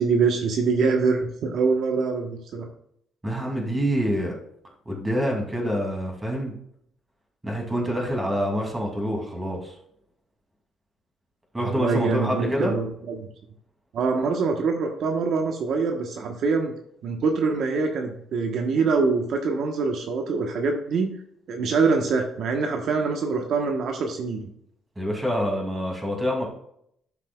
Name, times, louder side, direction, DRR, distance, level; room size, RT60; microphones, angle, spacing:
voice 1, 0.0-2.7 11.6-13.3 13.9-16.7 17.0-21.1 21.5-24.5, right 4 dB, 65° right, 3 dB, 1.1 m, -24 dB
voice 2, 3.2-4.3 4.9-6.6 7.4-9.7 11.5-12.7 25.0-26.5, equal, 15° right, 0 dB, 2.6 m, -26 dB
12.0 x 5.8 x 2.3 m, 0.70 s
cardioid pair, 115°, 0 cm